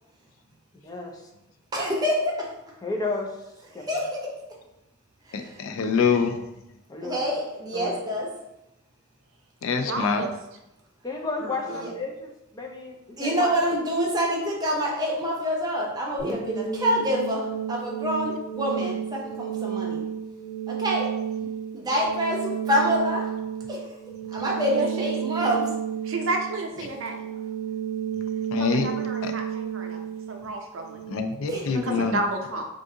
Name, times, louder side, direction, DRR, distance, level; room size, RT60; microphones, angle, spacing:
voice 1, 1.7-2.5 3.8-4.2 5.4-5.5 7.0-8.3 11.7-11.9 13.2-20.0 20.7-21.1 21.7-23.3 23.7-23.9 24.3-25.7 31.5-31.6, equal, 20° right, -2 dB, 0.6 m, -26 dB
voice 2, 2.8-3.3 3.7-3.9 6.9-7.3 7.7-8.0 11.0-13.5, left 3 dB, 20° left, 1 dB, 0.4 m, -32 dB
voice 3, 5.3-6.4 9.6-10.2 28.5-28.9 29.2-29.3 31.1-32.2, left 5 dB, 90° left, 7 dB, 0.4 m, -25 dB
voice 4, 9.8-10.3 11.4-11.9 24.7-25.1 26.0-27.3 28.8-30.0 30.3-31.0 31.8-32.7, right 2 dB, 75° right, 2 dB, 0.5 m, -31 dB
sound 1, 16.2-31.2, right 8 dB, 55° left, 1.5 m, -32 dB
2.6 x 2.4 x 3.6 m, 0.90 s
head